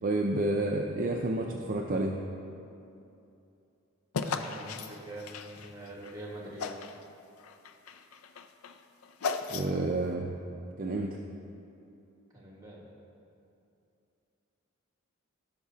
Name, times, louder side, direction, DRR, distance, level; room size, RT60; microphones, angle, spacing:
voice 1, 0.0-2.2 9.5-10.3 10.8-11.2, right 2 dB, 40° right, 1 dB, 0.5 m, -30 dB
sound 1, 4.1-6.1 6.6-7.0 7.4-10.0, left 5 dB, 85° left, 0.5 m, -36 dB
voice 2, 4.2-6.7 12.3-13.0, right 1 dB, 20° right, -3 dB, 1.6 m, -44 dB
16.0 x 5.9 x 2.8 m, 2.7 s
head